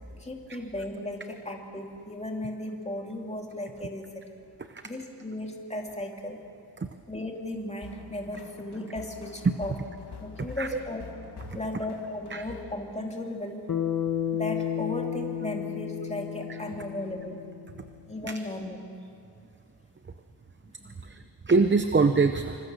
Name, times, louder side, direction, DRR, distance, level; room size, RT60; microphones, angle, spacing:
voice 1, 0.2-4.1 4.8-6.4 7.1-9.8 10.2-11.0 11.5-13.7 14.3-17.4 18.1-18.8 20.8-21.1, left 1 dB, 15° left, 1 dB, 2.6 m, -36 dB
sound 1, 7.8-12.7, left 5 dB, 70° left, 2.6 m, -46 dB
Bass guitar, 13.7-18.1, left 9 dB, 50° left, 1.7 m, -32 dB
voice 2, 21.0-22.7, right 4 dB, 25° right, 9 dB, 0.7 m, -25 dB
26.5 x 25.5 x 6.9 m, 2.6 s
wide cardioid pair, 160°, 42 cm